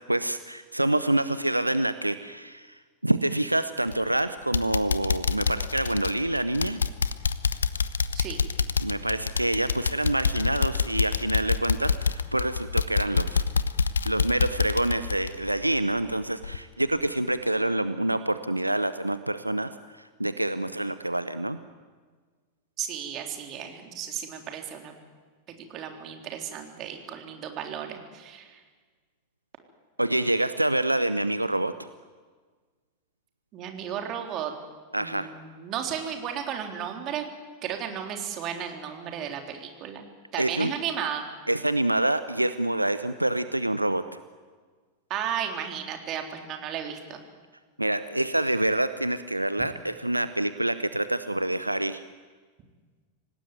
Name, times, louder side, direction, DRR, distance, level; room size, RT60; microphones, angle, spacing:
voice 1, 0.1-2.7 3.0-6.8 8.8-13.4 14.1-21.6 30.0-31.9 34.9-35.3 40.4-40.7 41.5-44.0 47.8-52.0, right 1 dB, 85° right, 12 dB, 0.7 m, -27 dB
sound 1, 3.9-4.2 4.5-16.1 16.4-16.6 17.0-17.1, left 5 dB, 70° left, 0.8 m, -27 dB
voice 2, 22.8-25.0 25.5-28.6 33.5-34.5 35.0-37.2 37.6-40.1 40.3-41.2 45.1-47.2, right 9 dB, 35° right, 3 dB, 3.6 m, -34 dB
26.0 x 18.0 x 9.4 m, 1.5 s
figure-of-eight pair, 90°, 0 cm